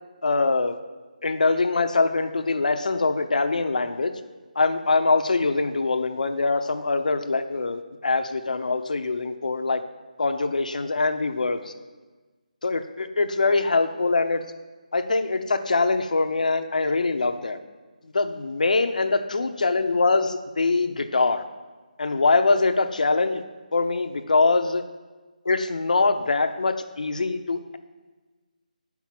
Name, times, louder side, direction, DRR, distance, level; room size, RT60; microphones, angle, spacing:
voice 1, 0.2-0.8 1.2-4.1 4.6-9.8 10.2-11.7 12.6-14.5 14.9-17.6 18.1-21.4 22.0-23.4 23.7-24.8 25.5-27.8, left 3 dB, 65° left, 8 dB, 0.9 m, -23 dB
8.2 x 6.0 x 7.6 m, 1.3 s
figure-of-eight pair, 170°, 5 cm